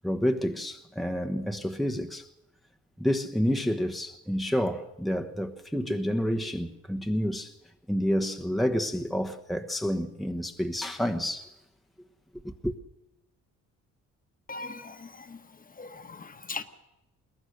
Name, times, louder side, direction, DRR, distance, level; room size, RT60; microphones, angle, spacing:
voice 1, 0.0-2.3 3.0-7.5 7.9-11.5 12.4-12.7, equal, ahead, 1.2 m, -29 dB
voice 2, 14.5-15.4 15.8-16.6, left 3 dB, 30° left, 1.4 m, -39 dB
21.5 x 18.5 x 6.6 m
cardioid pair, 90°, 30 cm